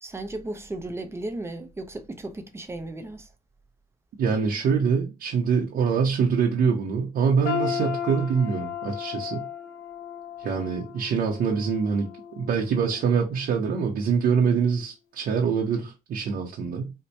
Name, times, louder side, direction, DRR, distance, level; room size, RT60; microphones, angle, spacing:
voice 1, 0.0-3.3, right 2 dB, 15° right, 0.5 m, -35 dB
voice 2, 4.2-9.4 10.4-12.1 12.4-16.9, right 6 dB, 60° right, 0.7 m, -24 dB
sound 1, 7.4-13.4 13.8-14.0 14.8-14.9, left 9 dB, 75° left, 0.9 m, -35 dB
4.3 x 2.1 x 2.6 m
cardioid pair, 110°, 17 cm